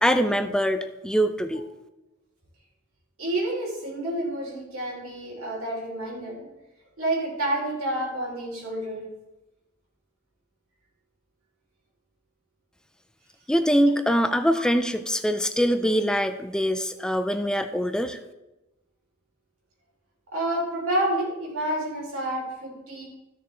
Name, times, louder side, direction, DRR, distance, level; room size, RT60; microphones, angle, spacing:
voice 1, 0.0-1.6 13.5-18.2, equal, 5° left, 9 dB, 0.3 m, -23 dB
voice 2, 3.2-6.5 7.0-9.0 14.2-14.3 20.3-23.1, right 1 dB, 85° right, -3 dB, 3.5 m, -29 dB
14.0 x 6.6 x 3.3 m, 1.0 s
head